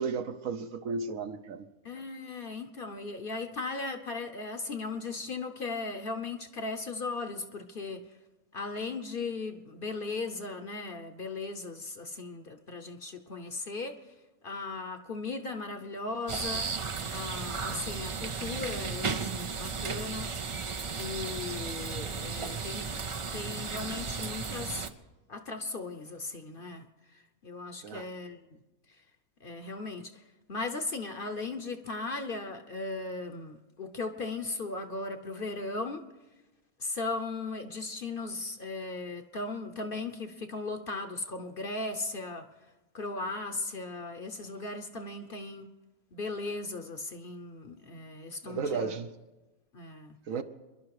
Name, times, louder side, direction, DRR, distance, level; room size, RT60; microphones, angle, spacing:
voice 1, 0.0-1.7 27.8-28.0 48.4-49.1 50.3-50.4, right 5 dB, 70° right, 1.2 m, -33 dB
voice 2, 1.8-8.0 8.5-14.0 14.4-16.7 17.1-20.3 21.0-23.0 23.3-24.9 25.3-26.9 27.1-28.4 29.4-30.2 30.5-36.1 36.8-42.5 42.9-45.7 46.1-49.0 49.7-50.2, left 3 dB, 45° left, 1.0 m, -37 dB
sound 1, 16.3-24.9, right 5 dB, 55° right, 0.3 m, -35 dB
25.5 x 11.5 x 4.8 m
omnidirectional pair, 1.5 m